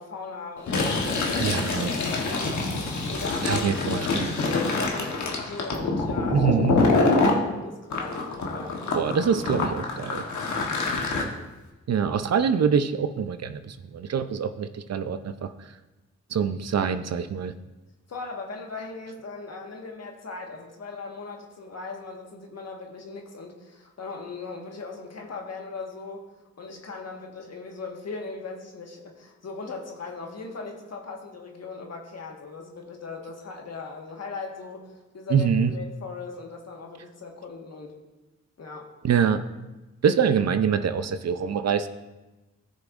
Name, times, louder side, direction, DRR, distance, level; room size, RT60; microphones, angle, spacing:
voice 1, 0.0-2.6 3.1-6.5 6.8-8.9 10.7-11.1 18.1-26.3 26.6-37.9 38.6-39.1, left 4 dB, 60° left, 1 dB, 1.6 m, -39 dB
Fill (with liquid), 0.6-7.4 7.9-11.2, left 3 dB, 80° left, 1.2 m, -26 dB
voice 2, 1.4-2.0 3.4-4.3 6.3-6.8 8.9-10.2 11.9-15.5 16.3-17.5 35.3-35.7 39.0-39.4 40.0-41.9, right 7 dB, 60° right, 10 dB, 0.6 m, -25 dB
14.0 x 6.3 x 2.5 m, 1.1 s
cardioid pair, 50°, 29 cm